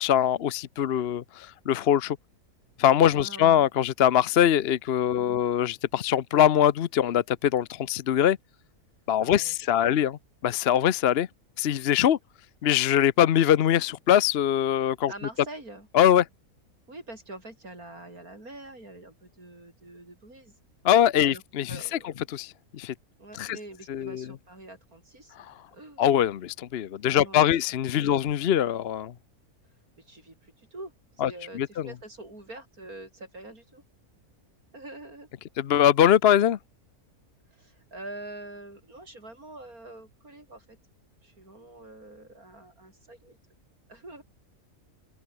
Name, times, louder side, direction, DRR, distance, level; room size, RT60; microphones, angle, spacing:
voice 1, 0.0-2.2 2.8-8.4 9.1-10.1 10.4-11.3 11.6-12.2 12.6-15.1 15.9-16.2 20.8-21.8 22.3-22.9 23.4-23.6 23.9-24.2 25.4-25.5 26.0-29.1 31.2-31.3 31.5-31.9 35.6-36.6, left 10 dB, 55° left, 0.8 m, -22 dB
voice 2, 3.1-3.7 5.2-5.4 9.2-10.0 15.1-15.9 16.9-20.6 21.2-21.4 21.7-22.2 23.2-25.4 25.7-26.0 27.0-28.3 30.0-33.8 34.7-35.3 37.5-40.8 41.2-43.4 43.9-44.2, right 2 dB, 75° right, 7.5 m, -45 dB
omnidirectional pair, 1.6 m